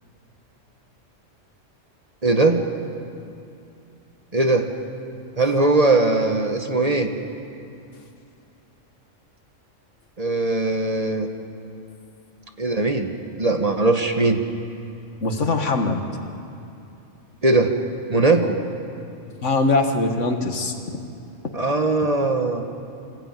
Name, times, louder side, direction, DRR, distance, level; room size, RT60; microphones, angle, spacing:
voice 1, 2.2-2.6 4.3-4.7 5.4-7.1 10.2-11.3 12.6-13.1 13.4-14.4 17.4-17.8 18.1-18.6 21.5-22.6, right 2 dB, 30° right, 5 dB, 1.3 m, -20 dB
voice 2, 15.2-16.0 19.4-20.7, left 3 dB, 70° left, 5 dB, 1.9 m, -21 dB
25.5 x 15.5 x 9.0 m, 2.7 s
omnidirectional pair, 1.3 m